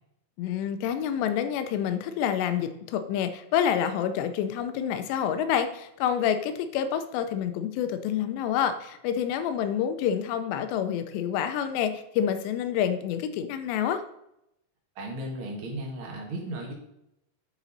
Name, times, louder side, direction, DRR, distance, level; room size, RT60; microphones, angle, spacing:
voice 1, 0.4-14.0, left 9 dB, 85° left, 9 dB, 2.8 m, -28 dB
voice 2, 14.9-16.7, right 1 dB, 85° right, 0 dB, 1.1 m, -35 dB
11.5 x 4.1 x 4.1 m, 0.81 s
omnidirectional pair, 4.9 m